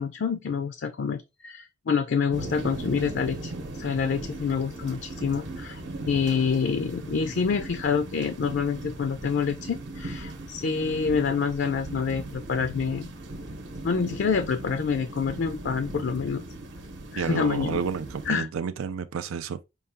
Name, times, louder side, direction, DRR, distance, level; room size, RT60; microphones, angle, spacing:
voice 1, 0.0-13.1 13.8-16.4 17.1-17.8 18.3-18.5, left 6 dB, 60° left, 0.4 m, -27 dB
sound 1, 2.3-18.3, right 2 dB, 60° right, 0.8 m, -38 dB
voice 2, 17.2-19.6, right 6 dB, 90° right, 0.4 m, -30 dB
5.4 x 2.3 x 3.4 m
head